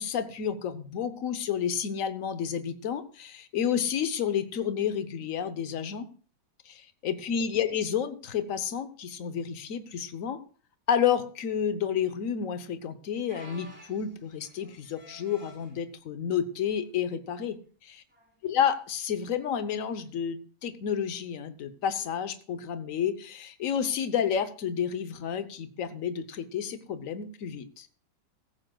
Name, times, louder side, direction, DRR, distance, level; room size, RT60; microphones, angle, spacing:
voice 1, 0.0-6.1 6.7-10.4 10.9-18.0 18.4-27.9, left 8 dB, 50° left, 11 dB, 1.0 m, -30 dB
sound 1, 13.3-15.8 16.5-16.8 17.1-17.2 18.1-18.3 20.0-20.1, equal, 5° right, 3.4 m, -51 dB
15.5 x 14.0 x 2.3 m, 0.38 s
omnidirectional pair, 2.3 m